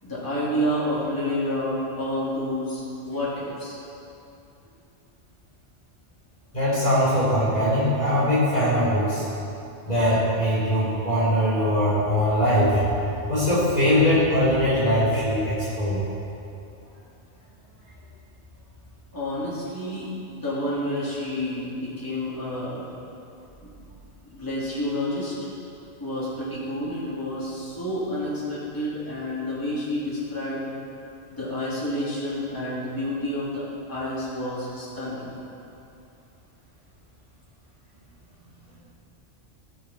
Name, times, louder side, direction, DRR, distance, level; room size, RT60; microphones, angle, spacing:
voice 1, 0.0-3.8 19.1-22.9 24.2-25.4 26.0-30.6 31.3-35.3, left 1 dB, 15° left, -10 dB, 3.0 m, -29 dB
voice 2, 6.5-9.2 9.9-12.8 13.3-16.0, equal, 35° left, -9 dB, 2.6 m, -21 dB
18.5 x 6.4 x 4.5 m, 2.8 s
omnidirectional pair, 1.2 m